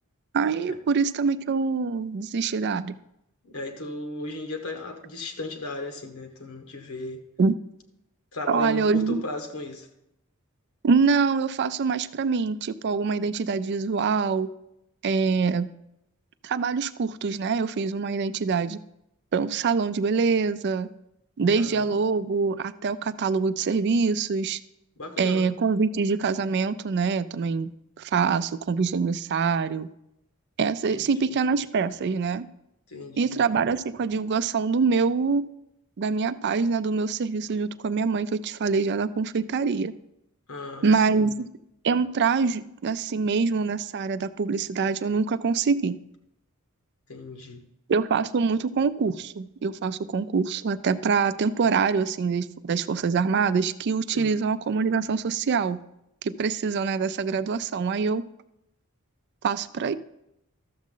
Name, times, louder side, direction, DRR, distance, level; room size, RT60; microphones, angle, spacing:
voice 1, 0.3-3.0 7.4-7.5 8.5-9.2 10.8-14.5 15.0-15.7 16.4-18.8 19.3-20.9 21.4-24.6 25.2-27.7 28.0-29.9 30.6-32.5 33.2-35.4 36.0-39.9 40.8-41.5 41.8-46.0 47.9-55.8 56.2-58.2 59.4-59.9, right 5 dB, 50° right, 14 dB, 0.4 m, -25 dB
voice 2, 3.4-7.2 8.3-9.9 21.5-22.0 25.0-25.5 30.9-31.4 32.9-33.4 40.5-41.3 47.1-47.6 54.1-54.4, left 2 dB, 85° left, 5 dB, 1.3 m, -36 dB
12.5 x 7.3 x 3.8 m, 0.82 s
head